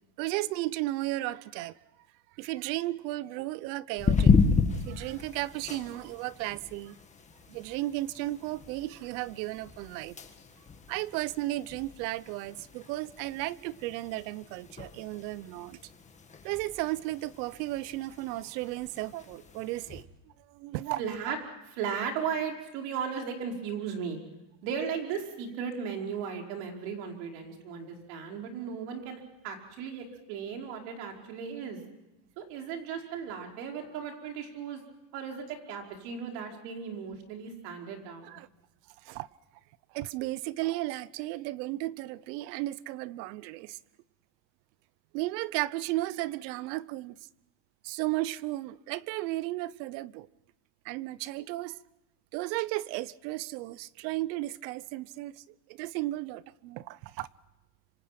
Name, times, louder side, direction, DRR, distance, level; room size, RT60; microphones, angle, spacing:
voice 1, 0.2-1.7 2.4-4.4 4.7-6.9 7.5-10.2 10.9-15.8 16.4-20.1 20.5-21.0 38.2-38.5 39.0-39.3 39.9-43.8 45.1-47.1 47.8-50.3 50.8-51.8 52.3-55.3 55.7-57.3, right 17 dB, 85° right, 1.0 m, -34 dB
sound 1, 4.0-20.0, left 4 dB, 15° left, 1.7 m, -33 dB
voice 2, 21.0-21.4 21.6-24.2 24.6-31.8 32.4-34.8 35.1-38.4, right 7 dB, 65° right, 5.2 m, -36 dB
26.5 x 25.5 x 6.0 m
cardioid pair, 165°, 50 cm